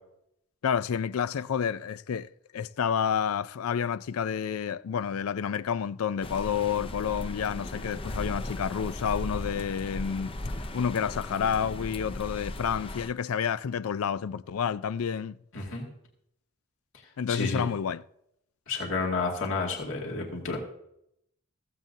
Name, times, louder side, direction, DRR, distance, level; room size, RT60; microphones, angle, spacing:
voice 1, 0.6-10.3 10.7-15.4 17.2-18.0, left 7 dB, 85° left, 0.4 m, -29 dB
sound 1, 6.2-13.1, left 1 dB, 25° left, 0.6 m, -37 dB
voice 2, 15.5-15.9 17.3-17.7 18.7-20.6, left 3 dB, 65° left, 2.2 m, -31 dB
15.0 x 15.0 x 2.7 m
head